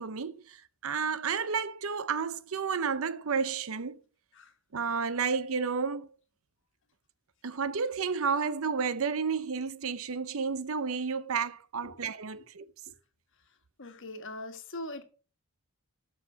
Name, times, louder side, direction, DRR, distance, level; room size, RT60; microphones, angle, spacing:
voice 1, 0.0-4.0 4.7-6.1 7.4-12.6, right 5 dB, 65° right, 0.7 m, -31 dB
voice 2, 13.8-15.0, left 1 dB, 55° left, 1.5 m, -41 dB
12.5 x 5.7 x 4.7 m
head